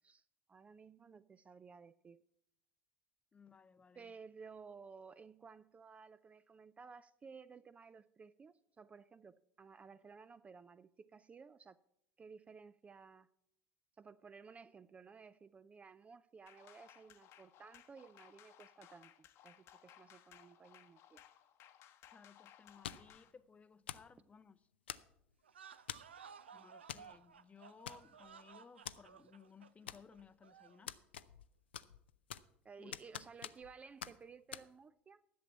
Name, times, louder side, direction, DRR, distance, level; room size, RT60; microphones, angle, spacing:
voice 1, 0.5-2.2 4.0-11.8 12.2-13.3 14.0-19.1 19.4-21.2 32.6-35.2, right 5 dB, 20° right, 0.3 m, -56 dB
voice 2, 3.3-4.1 22.1-24.6 26.5-31.0 32.8-33.0, left 6 dB, 20° left, 0.6 m, -60 dB
sound 1, 16.5-23.3, left 11 dB, 50° left, 0.9 m, -62 dB
sound 2, 22.8-23.2 23.9-24.1 24.9-25.3 25.9-26.2 26.9-27.1 27.4-27.5 27.9-28.3 28.9-29.0 29.9-30.3 30.9-31.5 31.7-32.6 32.9-33.7 34.0-34.1 34.5-34.7, left 9 dB, 75° left, 0.4 m, -46 dB
sound 3, 25.4-30.9, right 7 dB, 80° right, 0.5 m, -57 dB
11.0 x 7.1 x 6.9 m
figure-of-eight pair, 70°, 6 cm